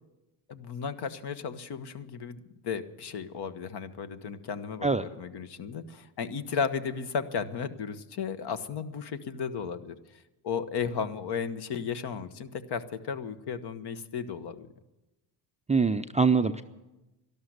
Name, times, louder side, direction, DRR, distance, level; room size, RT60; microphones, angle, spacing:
voice 1, 0.5-4.9 5.2-14.7, left 6 dB, 55° left, 11 dB, 1.2 m, -34 dB
voice 2, 15.7-16.6, right 4 dB, 15° right, 8 dB, 0.4 m, -24 dB
12.5 x 12.0 x 8.1 m, 1.0 s
supercardioid pair, 85°, 49 cm